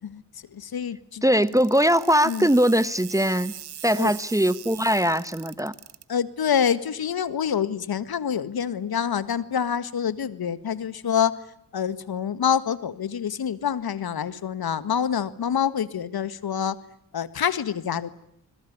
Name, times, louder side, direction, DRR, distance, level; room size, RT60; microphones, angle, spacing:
voice 1, 0.5-1.2 2.2-2.5 3.9-4.1 6.1-11.4 11.7-16.8 17.1-18.1, left 8 dB, 55° left, 15 dB, 1.9 m, -26 dB
voice 2, 1.2-3.5 3.8-5.7, equal, 5° right, 16 dB, 1.2 m, -21 dB
sound 1, 1.4-6.0, right 10 dB, 60° right, 1.7 m, -41 dB
26.0 x 21.5 x 9.5 m, 0.71 s
hypercardioid pair, 40°, 44 cm